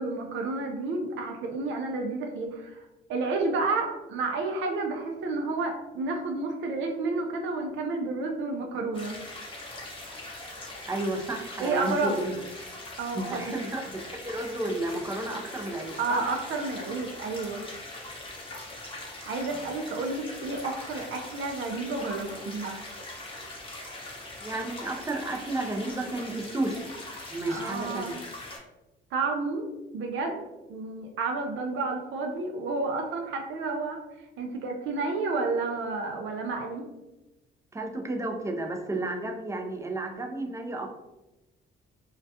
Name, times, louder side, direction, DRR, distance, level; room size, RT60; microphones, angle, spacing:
voice 1, 0.0-2.8 3.1-9.1 11.6-12.1 13.0-13.6 16.0-17.6 19.3-22.7 27.5-28.2 29.1-29.7 29.9-30.4 30.7-34.0 34.4-36.8, right 3 dB, 75° right, 3 dB, 0.4 m, -30 dB
sound 1, 8.9-28.6, left 2 dB, 25° left, 0.8 m, -41 dB
voice 2, 10.9-12.3 13.1-16.2 24.4-26.8 27.3-28.2 37.7-40.9, right 2 dB, 15° right, 2 dB, 0.4 m, -32 dB
2.3 x 2.2 x 2.7 m, 1.0 s
cardioid pair, 90°, 20 cm